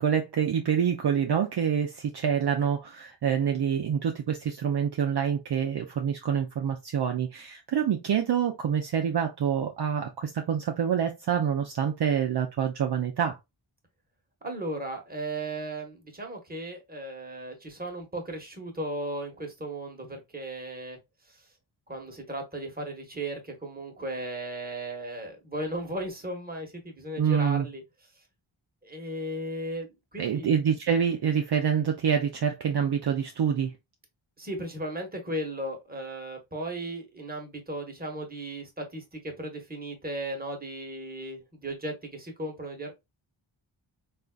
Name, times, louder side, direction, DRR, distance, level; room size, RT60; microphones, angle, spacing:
voice 1, 0.0-13.4 27.2-27.7 30.2-33.7, right 8 dB, 55° right, 0.6 m, -26 dB
voice 2, 14.4-21.0 21.3-21.4 21.9-27.8 28.8-30.6 34.4-42.9, right 1 dB, 20° right, 1.1 m, -36 dB
3.7 x 2.4 x 2.2 m
wide cardioid pair, 70°, 48 cm